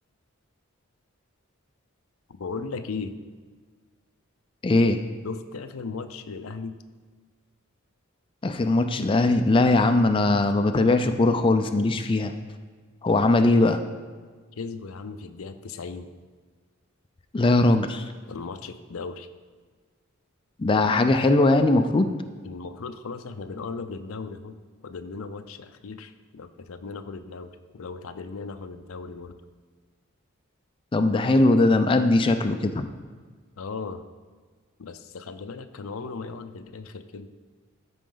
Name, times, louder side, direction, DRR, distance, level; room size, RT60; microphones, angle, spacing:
voice 1, 2.3-3.1 5.2-6.8 14.6-16.1 18.3-19.3 22.4-24.6 24.8-29.4 33.6-34.0 34.8-37.3, left 4 dB, 80° left, 10 dB, 0.5 m, -37 dB
voice 2, 4.6-5.0 8.4-12.3 13.0-13.8 17.3-18.0 20.6-22.1 30.9-32.9, left 2 dB, 25° left, 7 dB, 0.4 m, -20 dB
13.5 x 5.1 x 3.9 m, 1.5 s
head